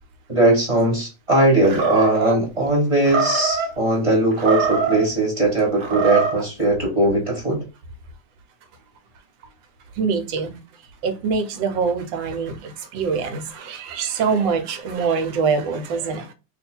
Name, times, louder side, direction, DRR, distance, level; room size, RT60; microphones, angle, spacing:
voice 1, 0.3-7.6, right 2 dB, 20° right, 1.1 m, -19 dB
Animal, 1.6-2.4 3.0-3.7 4.3-5.1 5.7-6.4, right 5 dB, 55° right, 1.0 m, -23 dB
voice 2, 10.0-10.6 11.0-16.3, right 5 dB, 80° right, 1.3 m, -24 dB
2.8 x 2.5 x 4.3 m
omnidirectional pair, 2.1 m